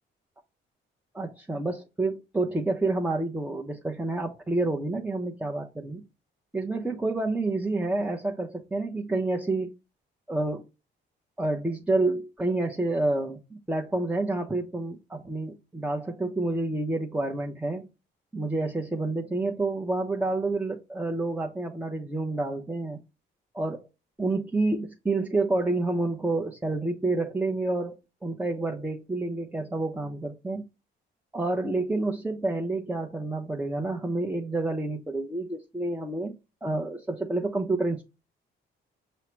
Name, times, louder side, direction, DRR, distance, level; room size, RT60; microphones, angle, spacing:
voice 1, 1.1-6.0 6.5-9.7 10.3-10.6 11.4-17.8 18.3-23.0 23.5-23.9 24.2-30.6 31.3-36.3 36.6-38.0, right 2 dB, 5° right, 0.6 m, -29 dB
5.5 x 2.1 x 4.4 m
cardioid pair, 90°, 20 cm